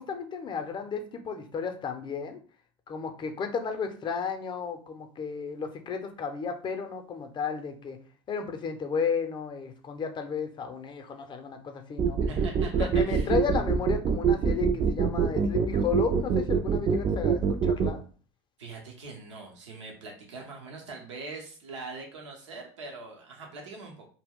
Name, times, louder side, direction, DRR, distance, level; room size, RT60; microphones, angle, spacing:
voice 1, 0.0-2.4 2.9-8.0 8.3-12.2 12.8-18.0, left 6 dB, 35° left, 6 dB, 0.5 m, -33 dB
sound 1, 12.0-17.9, right 6 dB, 35° right, 0.4 m, -24 dB
voice 2, 12.2-13.3 18.6-24.1, right 3 dB, 85° right, 0 dB, 0.7 m, -42 dB
2.2 x 2.1 x 3.5 m, 0.41 s
hypercardioid pair, 80°, 15 cm